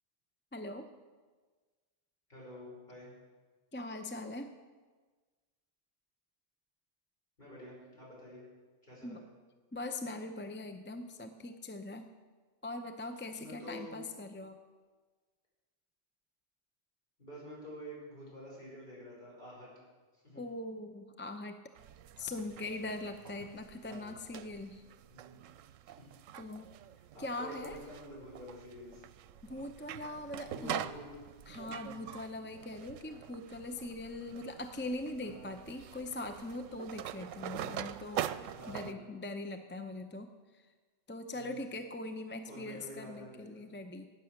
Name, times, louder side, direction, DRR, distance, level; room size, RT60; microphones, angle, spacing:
voice 1, 0.5-0.9 3.7-4.5 9.0-9.2 9.7-12.1 12.6-14.6 20.3-21.6 22.2-24.8 26.4-26.7 27.2-27.8 29.4-30.9 31.5-38.3 38.7-40.3 41.1-44.1, left 2 dB, 15° left, 7 dB, 0.4 m, -41 dB
voice 2, 2.3-3.1 7.4-8.4 8.8-9.2 13.3-14.0 17.2-19.7 20.2-20.4 23.9-24.0 25.1-25.4 26.9-29.0 30.4-31.1 35.2-35.5 38.5-39.1 41.3-41.7 42.4-43.7, equal, 40° left, -5 dB, 6.0 m, -48 dB
sound 1, 21.8-38.9, right 11 dB, 85° right, 0.9 m, -44 dB
17.0 x 9.1 x 6.5 m, 1.4 s
omnidirectional pair, 1.3 m